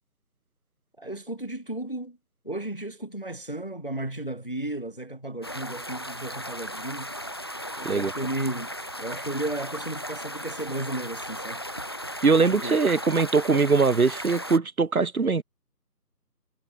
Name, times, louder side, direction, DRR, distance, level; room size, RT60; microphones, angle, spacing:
voice 1, 1.0-2.2 2.4-7.1 7.8-11.6 12.5-12.8, right 1 dB, 35° left, 0.8 m, -34 dB
sound 1, 5.4-14.6, equal, 15° left, 1.7 m, -36 dB
voice 2, 12.2-15.4, right 4 dB, 60° right, 0.9 m, -22 dB
figure-of-eight pair, 170°, 49 cm